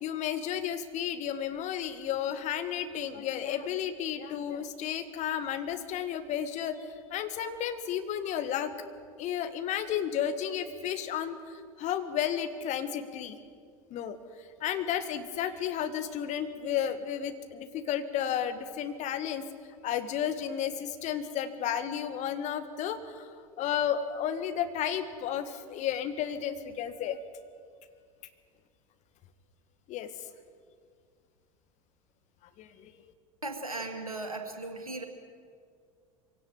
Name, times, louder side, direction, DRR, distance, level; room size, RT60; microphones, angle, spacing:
voice 1, 0.0-6.9 7.1-8.7 9.2-13.4 13.9-14.2 14.6-19.5 19.8-27.2 29.9-30.1 32.6-33.1, left 9 dB, 40° left, 10 dB, 1.9 m, -32 dB
voice 2, 33.4-35.0, right 2 dB, 90° right, 4 dB, 2.4 m, -37 dB
24.0 x 17.5 x 9.1 m, 2.1 s
figure-of-eight pair, 80°, 18 cm